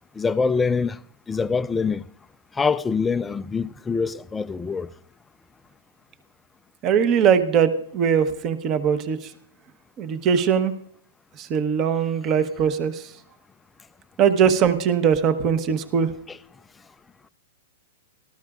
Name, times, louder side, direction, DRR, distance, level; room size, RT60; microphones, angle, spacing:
voice 1, 0.1-1.0 1.3-2.0 2.5-4.9 16.3-16.4, left 5 dB, 10° left, 0.3 m, -24 dB
voice 2, 6.8-9.3 10.0-10.7 11.4-13.1 14.2-16.1, right 7 dB, 30° right, 1.0 m, -21 dB
18.0 x 13.0 x 2.5 m
hypercardioid pair, 150°, 0 cm